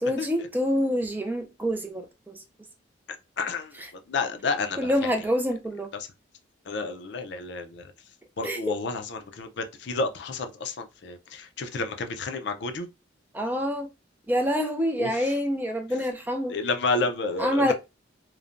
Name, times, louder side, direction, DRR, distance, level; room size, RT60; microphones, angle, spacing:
voice 1, 0.0-2.3 4.8-5.9 8.4-8.6 13.3-13.9 14.3-16.6 17.4-17.7, equal, 10° right, 0.3 m, -26 dB
voice 2, 3.4-5.1 6.7-7.9 8.4-12.9 15.0-15.3 16.5-17.7, left 3 dB, 65° left, 0.4 m, -30 dB
3.1 x 2.1 x 2.4 m
head